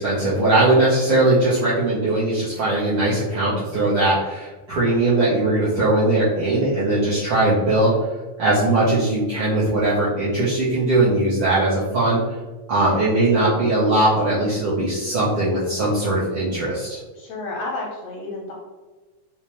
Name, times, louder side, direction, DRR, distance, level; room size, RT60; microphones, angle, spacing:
voice 1, 0.0-7.9 8.4-12.2 12.7-17.0, right 2 dB, 75° right, -9 dB, 1.3 m, -20 dB
voice 2, 12.8-13.6 17.1-18.5, left 2 dB, 80° left, -2 dB, 1.5 m, -32 dB
4.8 x 2.1 x 2.9 m, 1.2 s
omnidirectional pair, 3.4 m